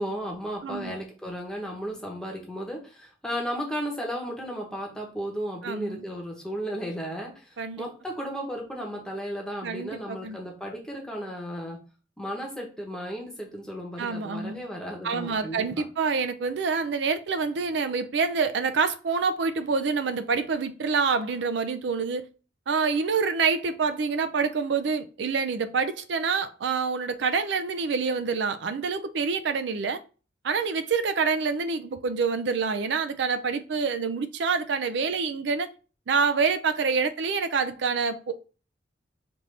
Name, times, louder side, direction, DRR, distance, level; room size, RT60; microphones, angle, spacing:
voice 1, 0.0-11.8 12.2-15.9, equal, 5° left, 0.9 m, -34 dB
voice 2, 0.6-0.9 5.6-6.0 7.6-7.9 9.6-10.4 14.0-14.6 15.0-22.2 22.7-30.0 30.4-35.7 36.1-38.3, right 5 dB, 65° right, 0.4 m, -27 dB
5.1 x 2.6 x 3.2 m
head